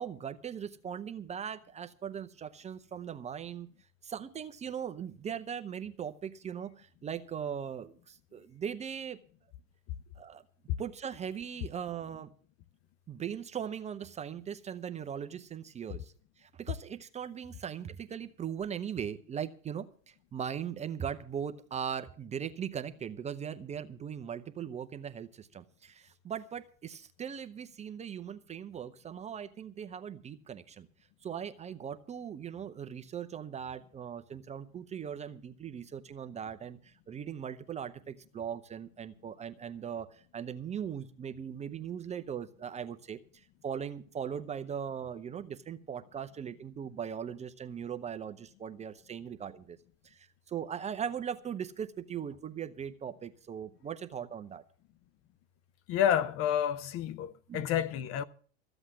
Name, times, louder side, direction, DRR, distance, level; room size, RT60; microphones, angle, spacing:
voice 1, 0.0-3.7 4.0-9.2 10.2-10.4 10.8-12.3 13.1-30.9 31.2-49.8 50.0-54.6 57.5-57.7, right 8 dB, 15° right, 0.6 m, -39 dB
voice 2, 55.9-58.2, left 9 dB, 35° left, 0.6 m, -29 dB
14.0 x 8.0 x 7.4 m
hypercardioid pair, 120°, 41 cm